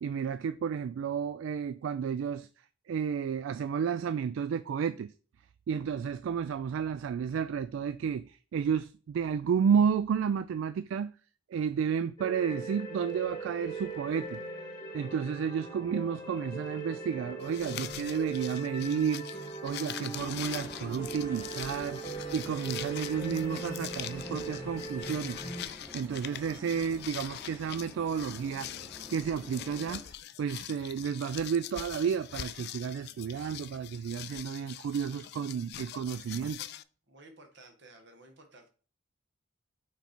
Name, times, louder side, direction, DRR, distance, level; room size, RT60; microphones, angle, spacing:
voice 1, 0.0-2.5 2.9-5.1 5.7-11.1 11.5-14.4 14.9-25.4 25.9-28.7 29.1-30.0 30.4-36.6, right 7 dB, 80° right, 0.3 m, -31 dB
sound 1, 12.2-25.6, right 3 dB, 20° left, 1.1 m, -40 dB
sound 2, 17.4-36.8, left 12 dB, 55° left, 0.3 m, -43 dB
sound 3, 20.1-30.0, left 1 dB, 15° right, 1.2 m, -49 dB
voice 2, 37.1-38.7, right 2 dB, 60° right, 1.4 m, -54 dB
5.8 x 4.2 x 4.4 m
head